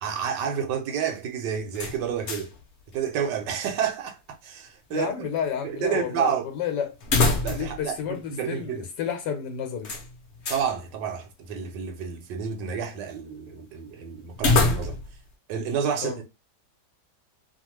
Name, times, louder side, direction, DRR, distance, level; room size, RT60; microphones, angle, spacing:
voice 1, 0.0-2.5 2.9-5.3 5.6-6.5 7.4-8.9 10.5-15.0 15.5-16.2, right 7 dB, 80° right, 1.2 m, -30 dB
sound 1, 1.7-2.6 2.9-3.0 7.0-7.8 8.1-8.2 9.8-10.7 14.3-15.2, left 3 dB, 55° left, 0.8 m, -25 dB
voice 2, 4.9-6.9 7.5-9.9 16.0-16.2, left 8 dB, 85° left, 1.3 m, -31 dB
2.8 x 2.3 x 3.0 m
omnidirectional pair, 1.9 m